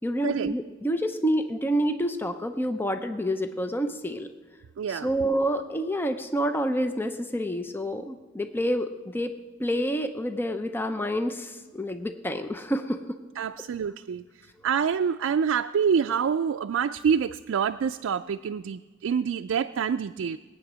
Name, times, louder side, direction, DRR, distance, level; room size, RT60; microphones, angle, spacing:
voice 1, 0.0-4.3 4.9-9.3 9.6-13.0, equal, 10° left, 7 dB, 0.6 m, -28 dB
voice 2, 4.8-5.1 13.4-14.2 14.6-20.4, right 7 dB, 90° right, 8 dB, 0.3 m, -26 dB
20.5 x 9.0 x 6.1 m, 1.4 s
head